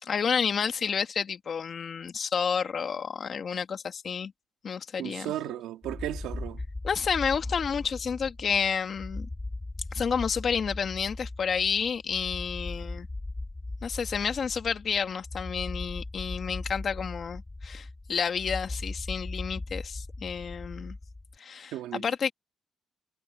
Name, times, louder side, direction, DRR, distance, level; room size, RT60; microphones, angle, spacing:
voice 1, 0.0-4.3 4.6-5.3 6.8-9.3 9.9-13.1 13.8-21.0 21.4-22.3, left 6 dB, 50° left, 2.2 m, -30 dB
voice 2, 5.0-6.7 21.7-22.0, right 13 dB, 90° right, 2.4 m, -35 dB
sound 1, 5.8-21.4, left 2 dB, 15° left, 3.3 m, -38 dB
cardioid pair, 90°, 0 cm